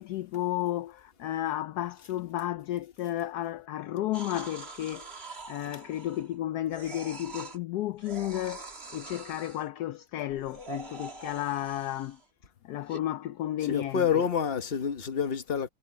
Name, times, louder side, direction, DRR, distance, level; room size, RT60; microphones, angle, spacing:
voice 1, 0.0-12.2 12.6-14.3, left 13 dB, 70° left, 0.9 m, -33 dB
sound 1, 4.1-6.3 6.7-7.6 8.0-9.7 10.3-12.2 12.9-13.0, right 3 dB, 30° right, 2.4 m, -44 dB
voice 2, 13.6-15.7, left 7 dB, 35° left, 1.2 m, -28 dB
omnidirectional pair, 2.1 m